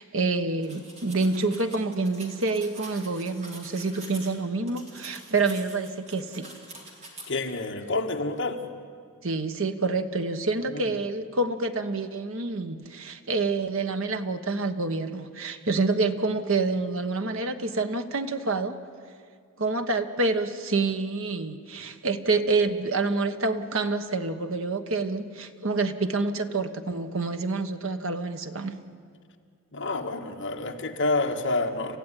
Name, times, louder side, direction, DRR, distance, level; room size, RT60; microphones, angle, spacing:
voice 1, 0.0-6.5 9.2-18.7 19.6-28.8, right 3 dB, 60° right, 8 dB, 1.3 m, -27 dB
sound 1, 0.6-4.3 4.7-7.3, right 2 dB, 30° right, 3.8 m, -45 dB
voice 2, 7.3-8.6 10.7-10.8 29.7-32.0, left 2 dB, 55° left, 2 dB, 1.8 m, -28 dB
28.0 x 15.0 x 10.0 m, 2.1 s
head